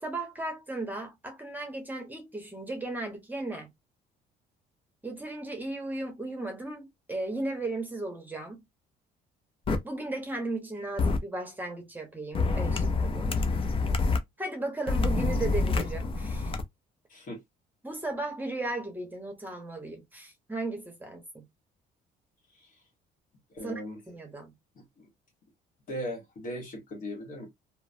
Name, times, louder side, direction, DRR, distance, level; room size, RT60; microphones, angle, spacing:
voice 1, 0.0-3.7 5.0-8.6 9.8-13.4 14.4-16.5 17.8-21.5 23.6-23.8 24.1-24.5, right 2 dB, 10° right, 0.9 m, -36 dB
sound 1, 9.7-9.8 11.0-11.2 12.3-14.2 14.9-16.6, left 3 dB, 30° left, 0.5 m, -27 dB
voice 2, 23.5-24.0 24.7-25.1 25.9-27.5, equal, 50° left, 1.4 m, -38 dB
3.0 x 2.1 x 2.5 m
cardioid pair, 110°, 17 cm